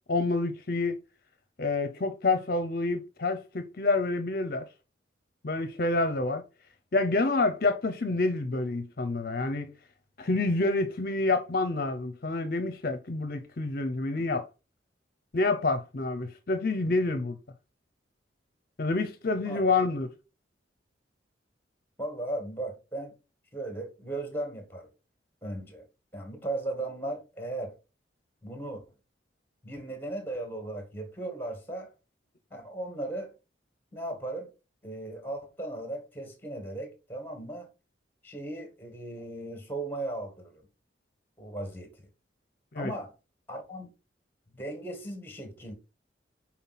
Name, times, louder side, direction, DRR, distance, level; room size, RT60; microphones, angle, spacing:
voice 1, 0.1-1.0 1.6-4.7 5.4-6.4 6.9-9.7 10.2-14.5 15.3-17.4 18.8-20.1 42.7-42.9, left 3 dB, 50° left, 0.6 m, -28 dB
voice 2, 19.4-19.9 22.0-23.1 23.5-24.9 25.4-25.8 26.1-27.8 28.4-28.8 29.6-31.9 32.5-33.3 33.9-34.5 34.8-37.7 38.2-40.7 41.4-42.1 42.8-43.1 43.5-43.9 44.5-45.7, right 1 dB, 10° left, 1.6 m, -37 dB
5.6 x 4.3 x 4.1 m
head